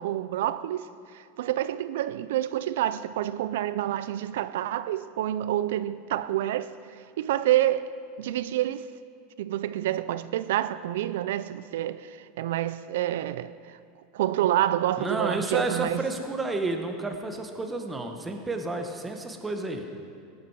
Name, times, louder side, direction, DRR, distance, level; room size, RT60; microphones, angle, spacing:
voice 1, 0.0-7.9 8.2-8.9 9.4-13.8 14.1-16.1, right 13 dB, 85° right, 0.4 m, -28 dB
voice 2, 15.0-19.8, right 2 dB, 10° right, 1.0 m, -31 dB
18.5 x 9.4 x 4.7 m
supercardioid pair, 165°, 0 cm